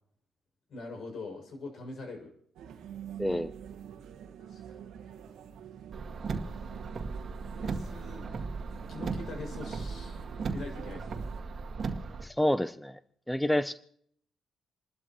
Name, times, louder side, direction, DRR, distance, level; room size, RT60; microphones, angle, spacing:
voice 1, 0.7-2.3 4.4-5.2 7.6-8.3 8.9-11.3, left 2 dB, 60° left, 3 dB, 6.8 m, -43 dB
sound 1, 2.6-11.4, right 8 dB, 85° right, 1.5 m, -46 dB
voice 2, 3.2-3.5 12.2-13.0 13.3-13.7, left 1 dB, 5° left, 12 dB, 0.6 m, -28 dB
Car, 5.9-12.2, right 4 dB, 50° right, 1.9 m, -37 dB
28.5 x 12.0 x 3.1 m, 0.63 s
cardioid pair, 90°, 0 cm